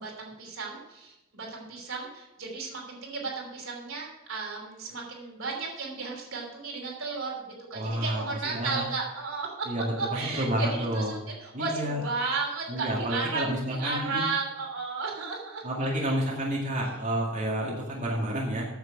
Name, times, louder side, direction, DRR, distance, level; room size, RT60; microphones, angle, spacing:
voice 1, 0.0-9.7 9.9-10.7 10.9-15.9, right 4 dB, 75° right, -1 dB, 3.1 m, -34 dB
voice 2, 7.7-8.8 9.7-11.1 11.5-12.0 12.7-14.3 15.6-18.7, right 1 dB, 40° right, -4 dB, 2.2 m, -30 dB
9.5 x 7.5 x 6.0 m, 0.98 s
head